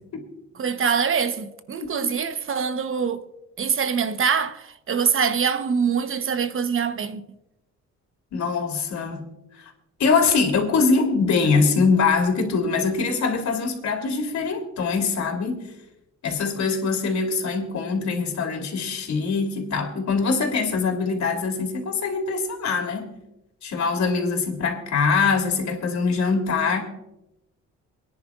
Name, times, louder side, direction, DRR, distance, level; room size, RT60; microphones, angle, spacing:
voice 1, 0.5-3.2 3.6-7.2, right 6 dB, 45° right, 1.0 m, -24 dB
voice 2, 8.3-9.2 10.0-15.6 16.2-23.1 23.6-26.8, left 4 dB, 65° left, 3.2 m, -23 dB
28.5 x 10.5 x 2.4 m
cardioid pair, 90°, 30 cm